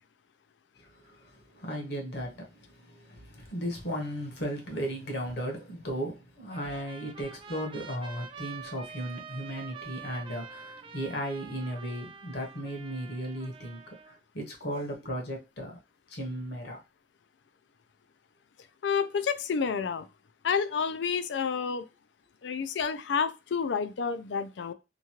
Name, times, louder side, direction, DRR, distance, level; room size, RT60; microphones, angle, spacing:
voice 1, 0.9-13.8 14.1-15.8 16.1-16.8, equal, 65° left, 1 dB, 1.1 m, -36 dB
Trumpet, 6.5-14.2, right 6 dB, 30° right, 0.4 m, -46 dB
voice 2, 18.8-20.1 20.4-21.8 22.4-24.7, left 6 dB, 85° left, 11 dB, 0.4 m, -29 dB
3.0 x 2.3 x 2.9 m, 0.27 s
head